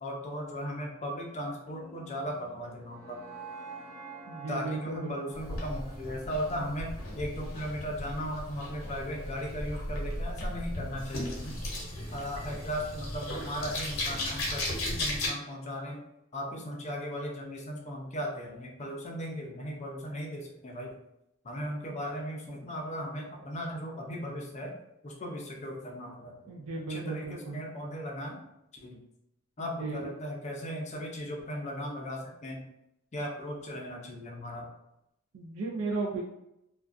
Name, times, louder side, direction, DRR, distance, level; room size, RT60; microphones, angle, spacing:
voice 1, 0.0-3.2 4.5-11.6 12.1-16.0 16.3-21.0 21.4-24.8 25.0-26.5 26.9-28.4 28.7-29.0 29.6-32.6 33.1-34.7, equal, 35° left, 0 dB, 0.5 m, -37 dB
sound 1, 1.6-7.7, right 3 dB, 10° right, 0.7 m, -48 dB
voice 2, 4.3-5.1 26.5-27.6 29.6-30.1 35.3-36.2, right 3 dB, 85° right, -1 dB, 0.4 m, -35 dB
sound 2, 5.3-15.3, left 1 dB, 65° left, 0.7 m, -36 dB
2.3 x 2.2 x 2.4 m, 0.84 s
head